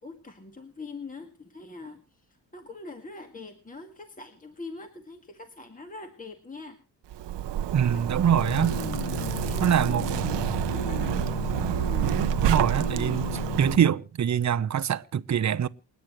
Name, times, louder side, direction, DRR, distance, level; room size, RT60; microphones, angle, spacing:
voice 1, 0.0-6.8 7.9-8.6 9.2-9.8 10.2-11.5, left 3 dB, 20° left, 1.9 m, -43 dB
Zipper (clothing), 7.1-13.8, right 11 dB, 75° right, 0.9 m, -28 dB
voice 2, 7.7-8.8 9.6-10.0 12.4-15.7, right 9 dB, 40° right, 0.8 m, -24 dB
sound 1, 8.3-13.9, left 10 dB, 70° left, 1.1 m, -35 dB
28.5 x 9.5 x 3.1 m
cardioid pair, 100°, 43 cm